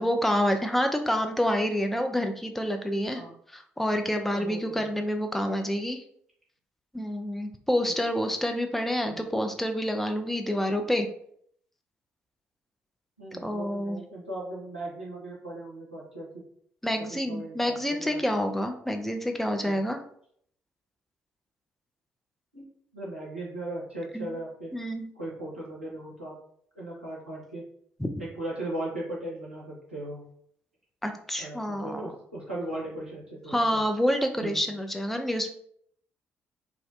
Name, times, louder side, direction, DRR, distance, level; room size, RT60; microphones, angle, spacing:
voice 1, 0.0-3.2 3.5-6.0 6.9-11.1 13.3-14.0 16.8-20.0 24.1-24.4 24.7-25.1 28.0-28.1 31.0-32.1 33.5-35.5, equal, 5° left, 5 dB, 0.3 m, -28 dB
voice 2, 4.3-4.9 9.1-9.3 13.2-16.4 17.0-18.2 19.6-19.8 22.5-22.6 22.9-24.7 25.2-26.4 26.8-27.6 28.2-30.2 31.4-33.8 34.4-34.6, right 1 dB, 90° right, -6 dB, 0.5 m, -38 dB
2.4 x 2.1 x 2.4 m, 0.65 s
figure-of-eight pair, 45°, 6 cm